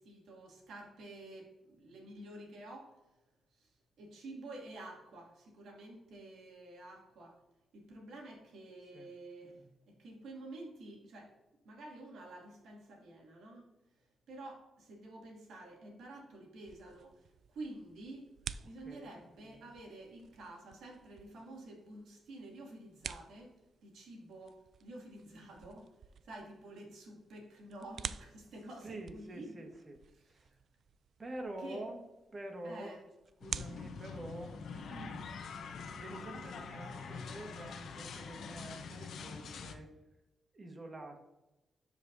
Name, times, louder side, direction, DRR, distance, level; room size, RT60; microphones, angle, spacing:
voice 1, 0.0-2.9 3.6-3.7 4.0-7.4 7.7-11.3 11.6-13.7 14.3-18.3 18.6-23.5 23.8-25.9 26.2-29.6 31.6-31.8 32.6-33.0, right 2 dB, 85° right, -1 dB, 2.4 m, -50 dB
sound 1, 16.6-34.5, right 7 dB, 65° right, 0.3 m, -50 dB
voice 2, 18.6-19.2 28.8-30.6 31.2-32.0 32.3-33.0 33.4-35.3 35.9-39.9 40.5-41.2, right 1 dB, 40° right, 3 dB, 1.6 m, -47 dB
sound 2, 33.4-39.8, left 5 dB, 75° left, 0.8 m, -45 dB
12.0 x 5.2 x 2.7 m, 1.0 s
cardioid pair, 85°, 0 cm